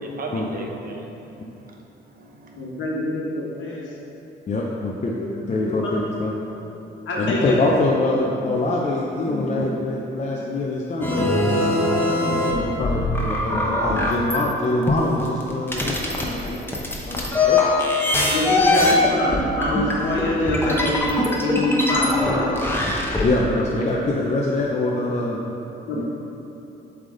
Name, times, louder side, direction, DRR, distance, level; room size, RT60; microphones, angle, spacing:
voice 1, 0.0-1.8 2.1-2.9 4.7-4.8 17.2-17.4 25.9-26.0, right 3 dB, 45° right, 0 dB, 0.8 m, -39 dB
voice 2, 2.6-3.8 5.1-5.2 5.6-5.9 7.1-7.6 8.3-8.4 9.2-9.6 18.3-22.7 25.9-26.0, left 1 dB, 75° left, -4 dB, 1.4 m, -25 dB
voice 3, 4.5-5.1 5.5-6.4 7.2-11.8 12.3-16.7 17.0-17.6 23.2-25.4 25.9-26.0, left 2 dB, 35° left, -3 dB, 0.6 m, -24 dB
sound 1, 11.0-14.4 14.9-23.3, left 2 dB, 10° left, 0.8 m, -22 dB
7.4 x 3.5 x 3.8 m, 2.9 s
cardioid pair, 90°, 20 cm